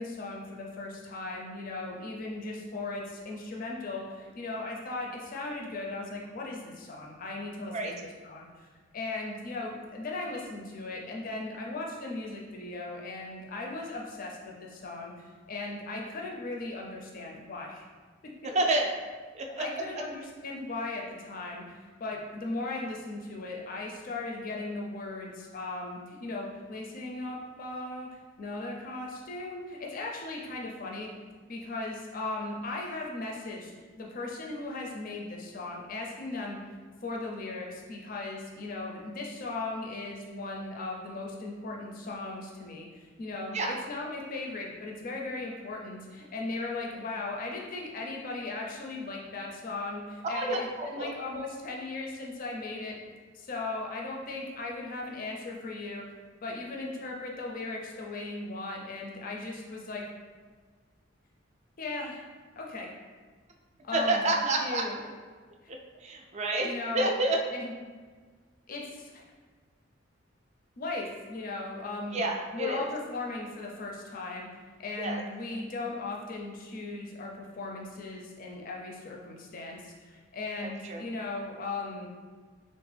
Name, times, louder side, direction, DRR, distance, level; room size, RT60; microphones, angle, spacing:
voice 1, 0.0-7.9 8.2-8.7 8.9-15.1 15.5-17.8 19.6-28.1 28.4-31.1 31.5-36.6 37.0-53.0 53.3-56.1 56.4-60.0 61.8-62.2 62.6-62.9 63.8-65.0 66.6-67.1 67.5-67.7 68.7-69.3 70.8-72.2 72.5-74.5 74.8-82.1, left 2 dB, 45° left, -1 dB, 0.4 m, -37 dB
voice 2, 18.4-18.9 19.3-19.6 19.9-20.0 43.5-43.7 50.2-51.1 63.9-64.8 66.0-67.4 72.1-72.9 75.0-75.2 80.9-81.0, right 2 dB, 35° right, 1 dB, 0.3 m, -29 dB
3.4 x 2.1 x 3.3 m, 1.5 s
head